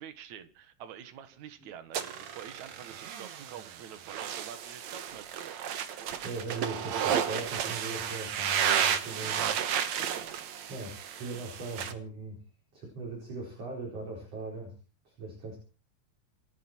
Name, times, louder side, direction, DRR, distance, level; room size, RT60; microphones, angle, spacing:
voice 1, 0.0-6.2 6.5-6.7 10.0-10.4, right 9 dB, 65° right, 2.0 m, -47 dB
sound 1, 1.9-11.9, right 8 dB, 80° right, 1.5 m, -32 dB
voice 2, 6.2-9.5 10.7-12.4 12.7-14.7 15.1-15.6, right 3 dB, 35° right, 5.4 m, -40 dB
28.0 x 11.0 x 4.6 m
omnidirectional pair, 5.3 m